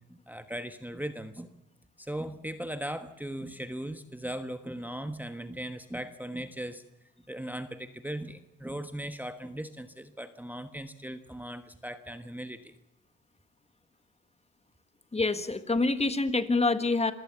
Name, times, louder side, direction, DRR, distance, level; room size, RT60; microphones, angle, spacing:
voice 1, 0.1-1.5 2.0-6.8 7.3-12.7, right 1 dB, 5° right, 9 dB, 1.2 m, -38 dB
voice 2, 15.1-17.1, left 3 dB, 20° left, 11 dB, 1.6 m, -26 dB
26.0 x 16.5 x 7.0 m, 0.91 s
cardioid pair, 90°, 30 cm